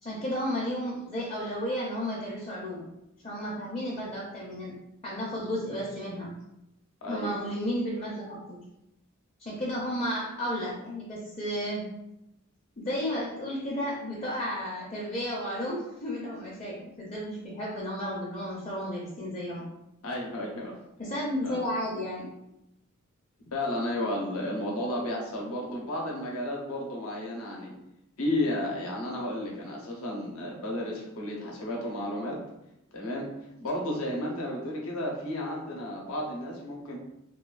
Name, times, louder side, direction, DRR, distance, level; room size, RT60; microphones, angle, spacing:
voice 1, 0.0-2.9 3.2-4.8 5.0-6.3 7.1-8.6 9.4-11.9 12.8-19.7 21.0-22.3, equal, 30° left, -5 dB, 0.5 m, -33 dB
voice 2, 7.0-7.4 20.0-20.7 21.4-21.6 23.4-27.7 28.2-32.4 32.9-33.3 33.6-37.0, left 1 dB, 80° left, -2 dB, 0.7 m, -32 dB
3.0 x 2.2 x 2.3 m, 0.87 s
head